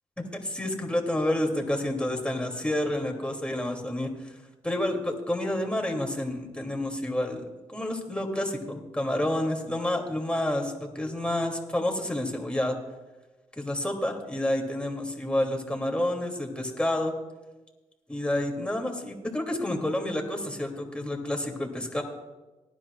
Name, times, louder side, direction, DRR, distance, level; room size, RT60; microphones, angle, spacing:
voice 1, 0.3-4.3 4.6-12.8 13.6-17.1 18.1-22.0, left 1 dB, 10° left, 1 dB, 2.8 m, -29 dB
19.5 x 11.0 x 2.5 m, 1.1 s
hypercardioid pair, 40°, 14 cm